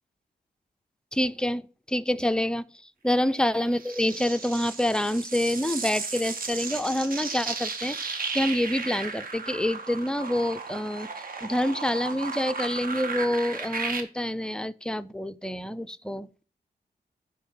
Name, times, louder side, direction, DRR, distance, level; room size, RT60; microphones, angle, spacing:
voice 1, 1.1-1.6 1.9-2.6 3.0-11.1 11.4-16.3, left 1 dB, 5° left, 0.4 m, -27 dB
sound 1, 3.4-14.0, right 4 dB, 55° right, 1.5 m, -35 dB
10.0 x 4.6 x 6.6 m
wide cardioid pair, 150°, 17 cm